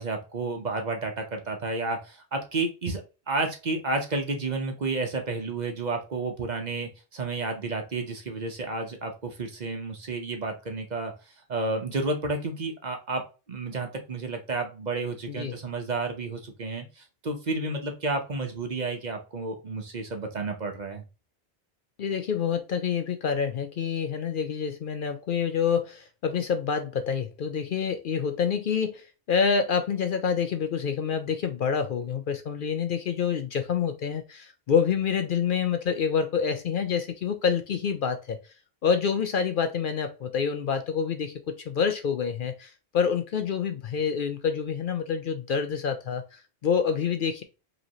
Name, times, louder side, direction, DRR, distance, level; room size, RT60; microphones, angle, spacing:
voice 1, 0.0-3.0 3.3-11.1 11.5-13.2 13.5-21.0, right 3 dB, 45° right, 4 dB, 0.8 m, -31 dB
voice 2, 22.0-38.4 38.8-47.4, left 6 dB, 60° left, 8 dB, 0.6 m, -27 dB
5.0 x 3.1 x 2.8 m, 0.31 s
omnidirectional pair, 1.1 m